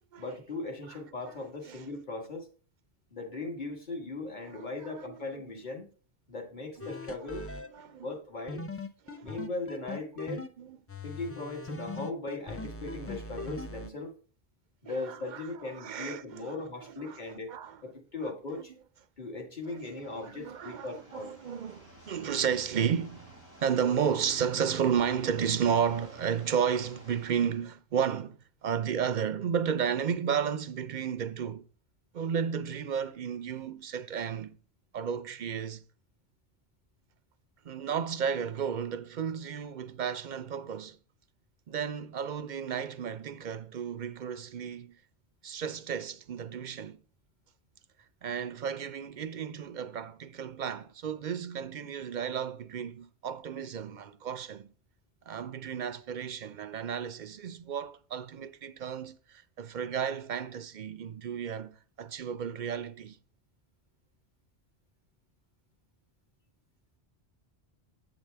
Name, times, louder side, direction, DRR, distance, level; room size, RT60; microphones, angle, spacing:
voice 1, 0.2-2.5 3.1-5.9 6.3-7.5 8.0-8.8 9.2-10.4 11.0-14.1 14.8-17.5 17.8-18.7 19.2-21.3, left 3 dB, 45° left, 1.7 m, -38 dB
voice 2, 4.5-5.2 7.7-8.1 9.1-9.4 10.2-10.8 14.9-17.8 18.2-18.6 19.7-23.3 23.6-31.6 32.1-34.6 34.9-35.8 37.6-41.0 41.7-45.0 45.4-47.0 48.2-54.7 55.3-63.2, right 7 dB, 55° right, 0.6 m, -33 dB
sound 1, 6.8-7.7 8.5-10.5 10.9-13.9, left 2 dB, 25° left, 0.3 m, -40 dB
sound 2, 19.6-27.7, right 1 dB, 75° left, 5.3 m, -52 dB
8.2 x 7.0 x 3.4 m
omnidirectional pair, 1.1 m